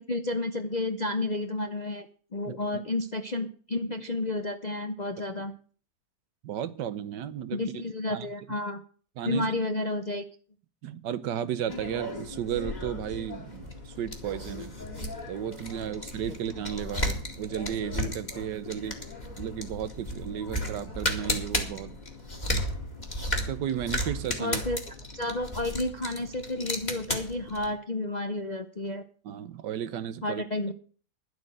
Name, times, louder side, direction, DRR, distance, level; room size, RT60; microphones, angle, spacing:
voice 1, 0.0-2.1 2.3-5.5 7.5-8.8 9.3-10.2 24.4-29.0 30.2-30.7, left 2 dB, 50° left, 7 dB, 0.5 m, -31 dB
voice 2, 6.4-7.8 8.1-8.3 9.2-9.5 10.8-14.8 15.3-19.0 19.4-22.0 23.3-24.6 29.2-30.4, right 10 dB, 85° right, 14 dB, 1.5 m, -34 dB
sound 1, 11.7-27.7, left 1 dB, 25° left, 2.2 m, -34 dB
11.0 x 8.2 x 7.8 m, 0.43 s
omnidirectional pair, 1.8 m